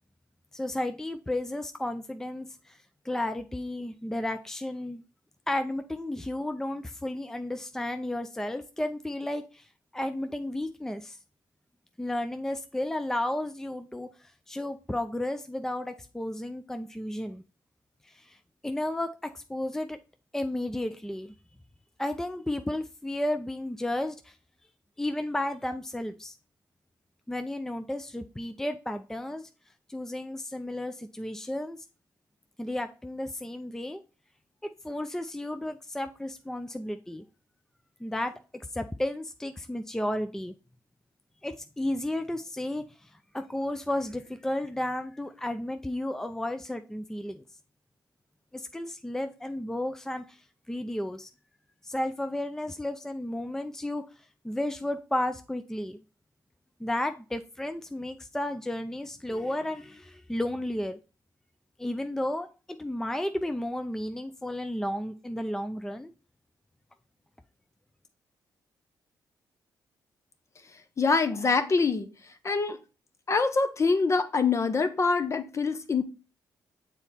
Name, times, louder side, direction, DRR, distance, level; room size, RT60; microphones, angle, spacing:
voice 1, 0.5-2.8 3.0-5.0 5.5-9.7 9.9-11.2 12.0-17.4 18.1-18.4 18.6-19.1 19.3-20.0 20.3-21.3 22.0-24.4 25.0-26.3 27.3-29.5 29.9-31.8 32.6-34.0 34.8-37.2 38.0-38.3 38.7-40.5 41.4-47.4 48.5-50.4 50.7-51.3 51.8-54.0 54.4-56.0 56.8-61.0 61.8-62.5 62.8-66.1, left 1 dB, 5° left, 0.5 m, -33 dB
voice 2, 71.0-72.1 72.4-72.8 73.3-76.0, left 4 dB, 40° left, 0.9 m, -25 dB
7.0 x 4.2 x 4.1 m
cardioid pair, 80°, 8 cm